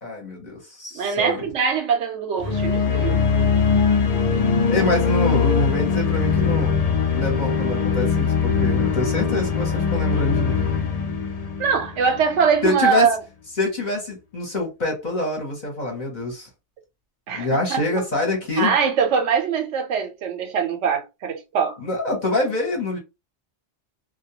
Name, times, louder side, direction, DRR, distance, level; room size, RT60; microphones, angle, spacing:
voice 1, 0.0-1.4 4.7-10.6 12.6-13.1 13.6-16.5 17.3-18.7 21.8-23.0, left 2 dB, 45° left, 0.8 m, -25 dB
voice 2, 0.9-3.5 11.6-13.2 17.3-18.0 18.6-21.8, right 6 dB, 75° right, 0.9 m, -22 dB
sound 1, 2.4-12.4, left 6 dB, 85° left, 0.3 m, -21 dB
2.2 x 2.2 x 2.8 m
omnidirectional pair, 1.2 m